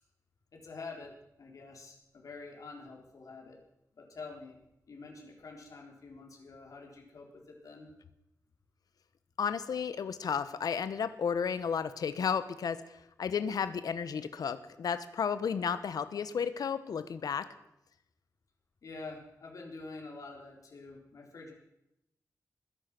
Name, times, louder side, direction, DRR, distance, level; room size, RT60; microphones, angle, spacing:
voice 1, 0.5-3.6 3.9-4.6 4.9-7.9 18.8-21.5, left 3 dB, 60° left, 0 dB, 3.8 m, -47 dB
voice 2, 9.4-17.5, left 6 dB, 85° left, 13 dB, 1.1 m, -33 dB
20.0 x 10.5 x 6.1 m, 0.85 s
wide cardioid pair, 150°, 6 cm